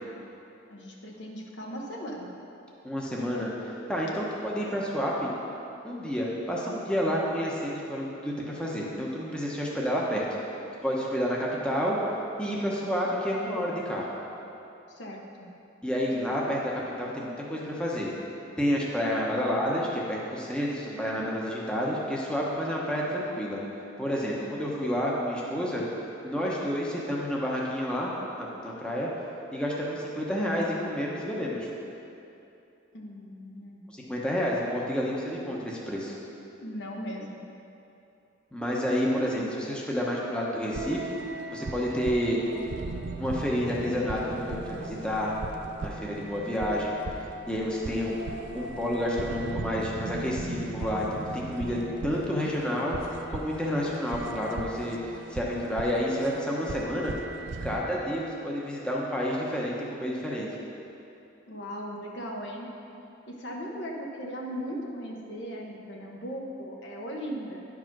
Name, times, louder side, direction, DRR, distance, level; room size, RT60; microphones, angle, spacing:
voice 1, 0.7-2.3 14.9-15.5 32.9-33.9 36.6-37.4 61.5-62.7 63.3-67.6, equal, 60° left, 0 dB, 1.1 m, -38 dB
voice 2, 2.8-5.3 5.8-10.3 10.8-12.0 12.4-14.1 15.8-16.7 17.0-18.1 18.6-23.6 24.0-25.8 26.2-28.1 28.4-29.1 29.5-31.7 33.9-36.1 38.5-41.1 41.5-42.4 43.2-45.4 45.8-47.0 47.5-48.2 48.5-53.0 53.3-57.1 57.6-60.6, equal, 5° left, -4 dB, 0.9 m, -29 dB
sound 1, 40.7-57.8, right 2 dB, 70° right, 0.6 m, -38 dB
10.5 x 4.8 x 6.0 m, 2.8 s
head